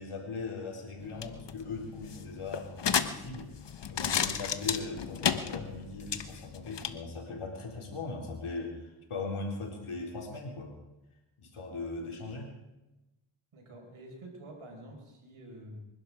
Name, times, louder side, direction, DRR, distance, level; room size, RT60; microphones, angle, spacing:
voice 1, 0.0-3.5 3.9-10.7 11.4-12.5, left 3 dB, 75° left, 1 dB, 4.3 m, -39 dB
sound 1, 1.0-7.0, left 7 dB, 55° left, 1.3 m, -33 dB
voice 2, 13.5-15.8, right 1 dB, 80° right, 1 dB, 5.4 m, -48 dB
24.5 x 11.5 x 5.0 m, 0.98 s
cardioid pair, 45°, 49 cm